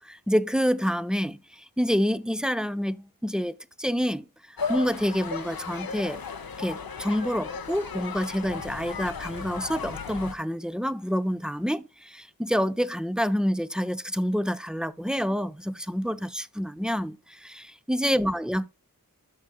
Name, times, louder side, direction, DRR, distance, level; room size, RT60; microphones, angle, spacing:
voice 1, 0.0-6.2 6.6-18.7, equal, ahead, 0.6 m, -28 dB
sound 1, 4.6-10.3, left 5 dB, 85° left, 0.9 m, -35 dB
14.0 x 6.0 x 2.3 m
wide cardioid pair, 40°, 34 cm